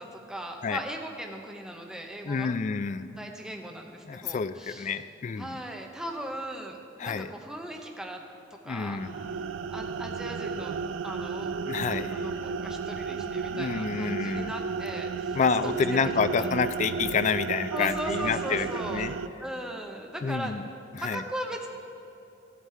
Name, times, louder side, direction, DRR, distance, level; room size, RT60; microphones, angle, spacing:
voice 1, 0.0-2.5 3.1-5.0 5.4-8.2 8.6-9.0 9.7-10.8 11.0-11.5 11.9-16.5 17.7-19.0 19.4-20.6 21.0-21.7, right 1 dB, 5° right, 2 dB, 0.7 m, -38 dB
voice 2, 2.3-3.2 4.0-5.6 7.0-7.3 8.7-9.1 11.7-12.2 13.1-13.2 13.5-14.5 15.3-19.1 20.2-20.7 20.9-21.2, left 5 dB, 40° left, 13 dB, 0.3 m, -29 dB
sound 1, 8.9-19.3, right 5 dB, 85° right, 0.4 m, -33 dB
14.0 x 8.2 x 4.3 m, 2.9 s
head